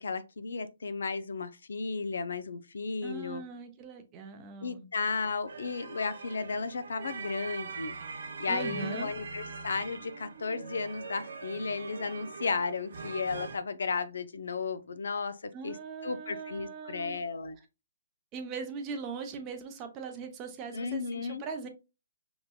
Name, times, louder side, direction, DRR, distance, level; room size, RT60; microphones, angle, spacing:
voice 1, 0.0-3.4 4.6-7.9 8.4-15.8 16.0-17.6 20.7-21.4, left 4 dB, 75° left, 0.5 m, -34 dB
voice 2, 3.0-4.8 8.5-9.1 15.5-17.2 18.3-21.7, right 5 dB, 20° right, 0.7 m, -40 dB
sound 1, 5.5-13.6, right 5 dB, 65° right, 0.8 m, -42 dB
5.1 x 3.0 x 2.3 m
hypercardioid pair, 155°, 0 cm